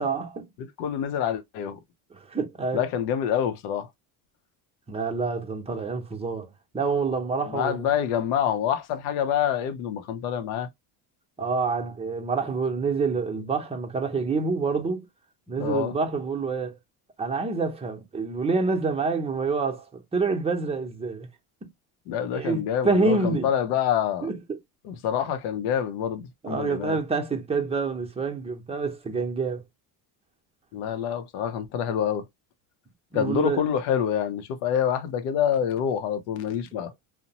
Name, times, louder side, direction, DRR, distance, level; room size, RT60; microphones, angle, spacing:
voice 1, 0.0-0.5 2.2-2.9 4.9-7.9 11.4-15.1 15.5-16.8 17.2-21.3 22.3-23.5 24.2-24.6 26.4-29.6 33.1-33.6, right 4 dB, 15° right, 0.6 m, -27 dB
voice 2, 0.6-1.8 2.7-3.9 7.5-10.7 15.6-15.9 22.1-24.3 24.8-27.0 30.7-32.3 33.1-36.9, left 9 dB, 85° left, 0.6 m, -26 dB
2.7 x 2.1 x 2.7 m
cardioid pair, 110°, 46 cm